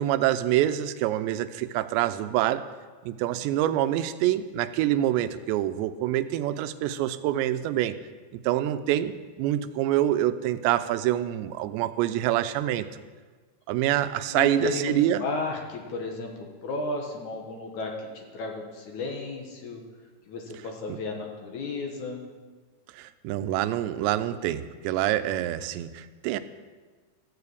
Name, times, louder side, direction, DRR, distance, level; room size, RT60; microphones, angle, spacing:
voice 1, 0.0-2.6 3.0-8.0 8.3-13.0 13.7-15.3 20.9-21.0 22.9-26.4, right 13 dB, 85° right, 11 dB, 2.8 m, -26 dB
voice 2, 14.3-19.8 20.3-22.2, left 3 dB, 60° left, 1 dB, 2.2 m, -33 dB
14.0 x 6.9 x 8.3 m, 1.4 s
omnidirectional pair, 5.0 m